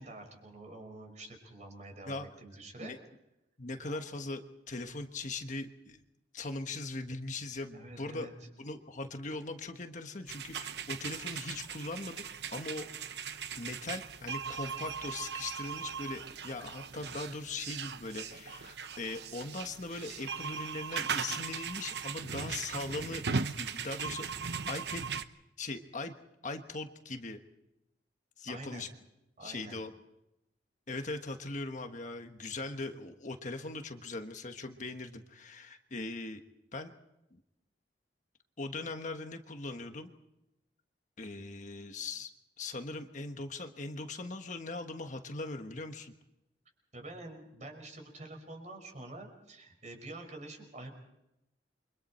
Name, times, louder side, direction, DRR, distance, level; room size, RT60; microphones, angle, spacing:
voice 1, 0.0-3.0 3.8-4.0 7.7-8.3 28.5-28.9 29.4-29.8 46.9-51.0, right 2 dB, 40° right, 4 dB, 5.5 m, -47 dB
voice 2, 3.6-4.4 4.7-6.0 6.3-8.3 8.6-23.2 23.6-24.3 24.7-25.0 25.6-26.1 26.4-27.4 28.4-28.9 29.4-29.9 30.9-36.4 36.7-36.9 37.3-37.4 38.6-40.1 41.2-42.3 42.6-46.1, left 2 dB, 45° left, 6 dB, 1.4 m, -40 dB
sound 1, 10.3-25.2, right 6 dB, 65° right, 1.0 m, -39 dB
29.0 x 24.5 x 4.4 m, 0.89 s
head